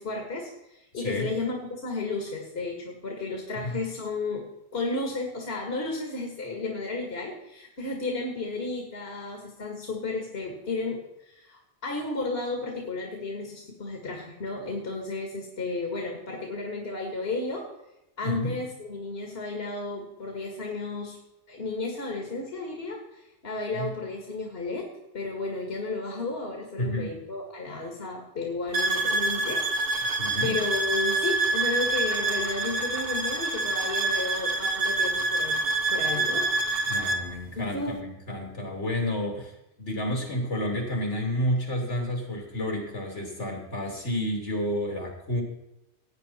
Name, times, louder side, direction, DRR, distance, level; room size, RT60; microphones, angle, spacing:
voice 1, 0.0-4.4 4.7-17.7 18.2-21.2 21.5-30.2 30.4-35.6 35.9-36.5 37.6-38.0, left 3 dB, 55° left, 1 dB, 2.1 m, -33 dB
voice 2, 0.9-1.3 3.5-3.8 18.2-18.5 23.7-23.9 26.8-27.1 30.2-30.6 36.9-39.5 39.8-45.4, left 1 dB, 80° left, 1 dB, 3.4 m, -30 dB
sound 1, 28.7-37.3, right 2 dB, 55° right, 1.4 m, -26 dB
16.5 x 9.2 x 4.3 m, 0.89 s
omnidirectional pair, 1.2 m